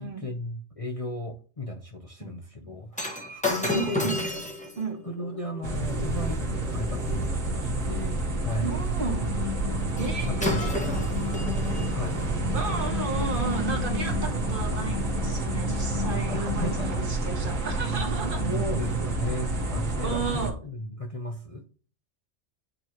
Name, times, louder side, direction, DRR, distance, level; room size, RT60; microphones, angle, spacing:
voice 1, 0.0-4.1 5.0-8.7 10.2-12.2 16.3-17.1 18.4-21.6, left 1 dB, 35° left, 0.7 m, -35 dB
Shatter, 2.9-7.3 10.0-10.1 10.4-11.9 12.6-12.8, left 1 dB, 5° left, 1.2 m, -33 dB
voice 2, 3.7-4.2 4.7-5.0 8.6-9.3 10.0-10.7 12.5-18.4 20.0-20.6, right 4 dB, 45° right, 1.6 m, -33 dB
sound 1, 5.6-20.5, right 2 dB, 75° right, 1.6 m, -29 dB
sound 2, 9.1-17.0, left 12 dB, 80° left, 1.5 m, -36 dB
9.0 x 4.6 x 3.0 m
omnidirectional pair, 1.3 m